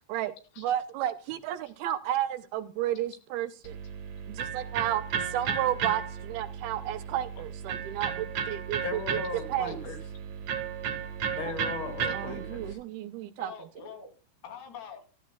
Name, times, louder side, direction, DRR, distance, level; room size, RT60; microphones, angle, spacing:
voice 1, 0.1-3.8 4.3-5.0 5.3-9.0 9.5-9.8 12.1-13.5, right 12 dB, 80° right, 10 dB, 2.4 m, -32 dB
Electric guitar, 3.6-12.7, right 7 dB, 55° right, 2.2 m, -34 dB
voice 2, 8.8-10.0 11.3-12.8, left 4 dB, 35° left, 4 dB, 2.7 m, -37 dB
voice 3, 9.4-10.0 10.5-10.6 13.4-14.1 14.4-15.1, left 6 dB, 80° left, 3 dB, 4.9 m, -45 dB
15.5 x 14.5 x 2.3 m, 0.35 s
omnidirectional pair, 4.7 m